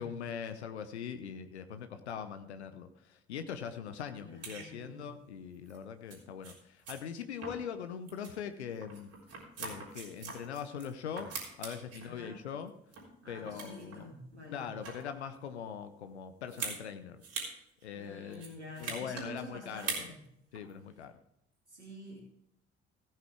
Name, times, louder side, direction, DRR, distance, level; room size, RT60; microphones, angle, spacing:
voice 1, 0.0-9.1 9.6-11.3 11.6-12.7 13.3-14.0 14.5-17.2 17.8-18.4 18.8-19.9 20.5-21.1, left 7 dB, 80° left, 10 dB, 0.7 m, -41 dB
voice 2, 4.2-5.1 12.0-12.4 13.2-14.7 17.9-20.2 21.7-22.2, equal, 90° right, -2 dB, 2.5 m, -48 dB
sound 1, 4.4-4.7 5.7-5.8 6.1-6.2 6.4-6.5 6.9-7.0 7.4-7.8 8.1-8.3 8.8-10.9 11.2-12.1 12.6-13.1 13.4-14.0 14.6-15.1 16.5-16.8 17.2-17.5 17.8-17.9 18.3-19.3 19.7-20.1 20.5-20.7, right 4 dB, 45° right, 3.8 m, -41 dB
16.5 x 8.9 x 3.5 m, 0.75 s
figure-of-eight pair, 50°, 33 cm